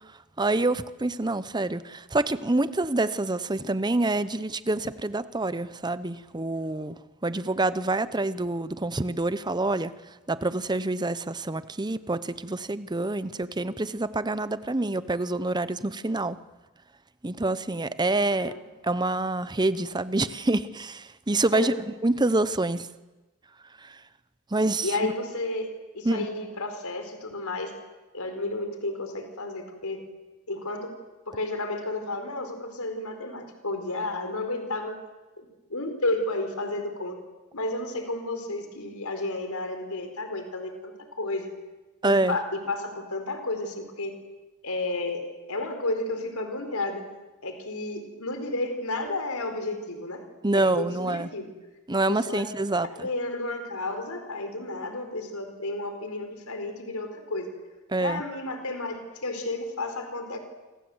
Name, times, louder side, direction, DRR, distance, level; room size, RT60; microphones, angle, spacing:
voice 1, 0.4-9.9 10.3-16.4 17.2-18.5 18.8-21.7 22.0-22.9 23.8-24.0 24.5-25.1 26.0-26.3 42.0-42.4 50.4-51.3 51.9-53.1 57.9-58.2, right 2 dB, 20° right, 14 dB, 0.8 m, -27 dB
voice 2, 24.8-27.7 28.1-30.1 30.5-30.9 31.3-34.9 35.4-37.2 37.5-41.5 42.0-44.2 44.6-45.2 45.5-47.0 47.4-50.2 50.5-51.5 52.1-52.5 52.9-57.5 58.0-60.4, left 2 dB, 75° left, 6 dB, 4.6 m, -32 dB
28.0 x 25.0 x 8.0 m, 1.1 s
head